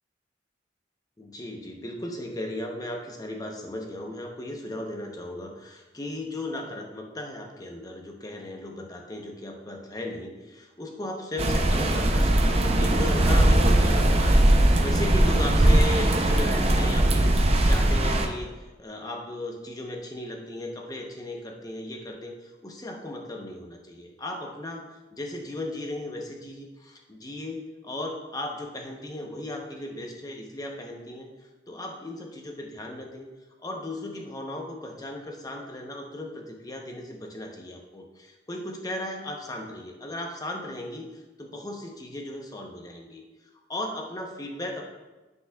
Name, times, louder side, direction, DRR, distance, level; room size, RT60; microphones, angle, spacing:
voice 1, 1.2-33.3 33.6-43.2 43.7-44.8, left 1 dB, 20° left, 1 dB, 0.8 m, -36 dB
sound 1, 11.4-18.3, right 1 dB, 35° right, 0.6 m, -20 dB
10.0 x 5.4 x 2.3 m, 1.1 s
head